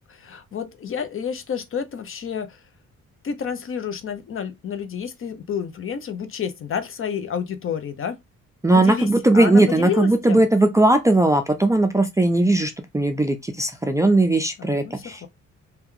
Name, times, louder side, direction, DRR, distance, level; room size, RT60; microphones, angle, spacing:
voice 1, 0.1-2.6 3.2-8.2 8.7-9.1 9.3-10.4 14.6-15.3, left 7 dB, 45° left, 0.7 m, -29 dB
voice 2, 8.6-15.3, right 2 dB, 10° right, 0.4 m, -18 dB
2.9 x 2.3 x 3.6 m
cardioid pair, 90°, 30 cm